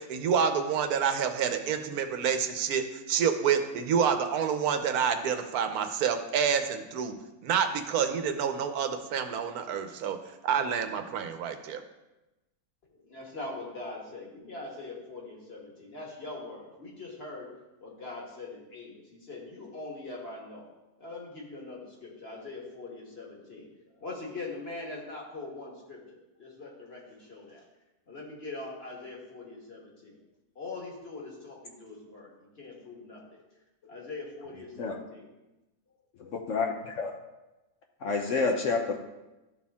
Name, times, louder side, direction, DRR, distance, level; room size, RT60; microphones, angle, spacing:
voice 1, 0.0-7.1 7.4-10.2 10.4-11.8, right 7 dB, 80° right, 8 dB, 1.2 m, -28 dB
voice 2, 12.8-17.5 17.8-20.7 21.0-27.6 28.1-30.2 30.5-33.3 33.9-35.3, left 3 dB, 40° left, -2 dB, 1.8 m, -42 dB
voice 3, 36.5-37.1 38.0-39.0, left 4 dB, 60° left, 2 dB, 1.0 m, -28 dB
12.5 x 4.2 x 3.5 m, 1.0 s
omnidirectional pair, 1.6 m